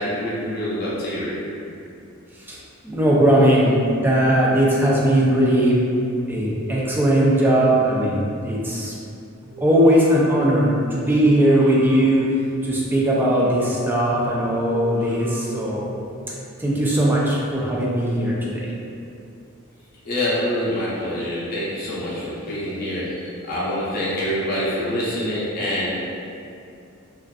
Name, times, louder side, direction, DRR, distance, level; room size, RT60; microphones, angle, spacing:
voice 1, 0.0-1.3 20.0-25.9, equal, 45° left, -8 dB, 0.7 m, -26 dB
voice 2, 2.8-5.8 6.3-8.9 9.6-12.2 12.6-15.8 16.6-18.7, right 1 dB, 10° right, -5 dB, 0.3 m, -19 dB
sound 1, 9.4-16.3, equal, 65° right, 1.1 m, -38 dB
2.5 x 2.3 x 2.3 m, 2.6 s
head